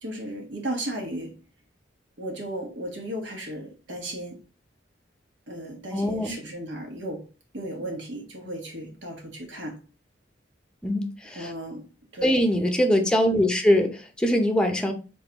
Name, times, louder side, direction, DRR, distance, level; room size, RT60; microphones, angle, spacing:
voice 1, 0.0-1.3 2.2-4.4 5.5-7.3 7.5-9.8 11.3-12.4, right 1 dB, 80° right, 1.4 m, -35 dB
voice 2, 5.9-6.3 10.8-11.5 12.2-14.9, equal, 5° left, 0.6 m, -22 dB
4.0 x 3.8 x 2.9 m
head